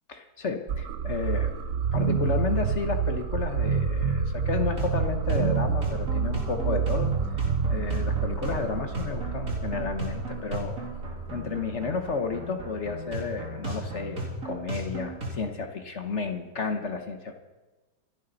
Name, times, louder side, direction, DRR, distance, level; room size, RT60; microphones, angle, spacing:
voice 1, 0.1-1.5 1.9-10.8 11.3-17.4, left 4 dB, 45° left, 6 dB, 1.0 m, -32 dB
sound 1, 0.7-11.6, right 6 dB, 65° right, 0.8 m, -28 dB
sound 2, 4.8-15.4, right 1 dB, 40° right, 3.3 m, -36 dB
27.0 x 10.0 x 4.0 m, 1.2 s
omnidirectional pair, 2.3 m